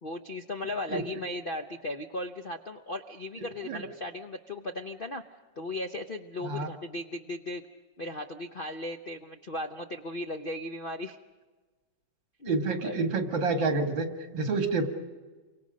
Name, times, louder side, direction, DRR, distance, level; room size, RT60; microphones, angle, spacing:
voice 1, 0.0-5.2 5.6-7.7 8.0-11.2 12.4-12.5 12.8-13.0, left 1 dB, 55° left, 6 dB, 0.6 m, -36 dB
voice 2, 12.5-14.1 14.3-14.9, right 3 dB, 80° right, 6 dB, 2.7 m, -28 dB
28.5 x 24.5 x 5.2 m, 1.3 s
omnidirectional pair, 2.0 m